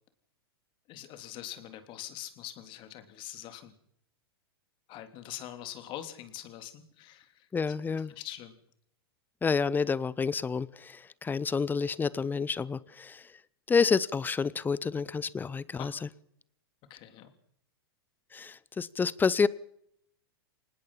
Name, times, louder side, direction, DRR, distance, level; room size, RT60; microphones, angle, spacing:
voice 1, 0.9-3.7 4.9-7.5 7.9-8.5 15.7-16.0 16.9-17.3, left 12 dB, 40° left, 8 dB, 3.4 m, -44 dB
voice 2, 7.5-8.1 9.4-13.3 13.7-16.1 18.3-19.5, left 5 dB, 15° left, 21 dB, 0.8 m, -29 dB
25.0 x 20.0 x 5.8 m, 0.71 s
hypercardioid pair, 100°, 13 cm